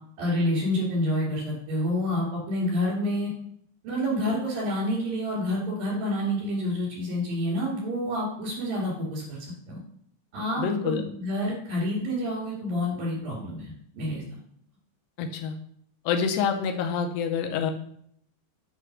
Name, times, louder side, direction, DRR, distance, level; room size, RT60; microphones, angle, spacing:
voice 1, 0.2-3.3 3.8-9.8 10.3-14.2, left 1 dB, 75° right, -5 dB, 4.3 m, -28 dB
voice 2, 10.6-11.0 15.2-15.6 16.1-17.7, left 6 dB, 90° left, 4 dB, 2.5 m, -27 dB
7.9 x 3.3 x 6.1 m, 0.66 s
omnidirectional pair, 4.0 m